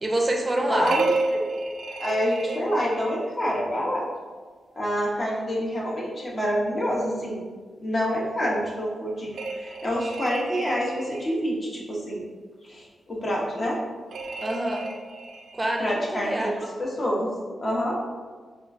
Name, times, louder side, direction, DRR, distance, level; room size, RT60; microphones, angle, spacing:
voice 1, 0.0-0.9 14.4-14.9 15.5-16.6, right 1 dB, 20° right, 1 dB, 0.5 m, -26 dB
voice 2, 0.7-1.5 2.0-4.1 4.8-7.4 7.8-12.2 12.7-13.8 15.8-17.3 17.6-18.0, equal, 35° left, -3 dB, 0.8 m, -27 dB
sound 1, 0.8-3.3 9.3-11.5 14.1-15.6, right 3 dB, 85° right, 0.3 m, -31 dB
4.3 x 2.3 x 2.5 m, 1.5 s
wide cardioid pair, 120°, 0 cm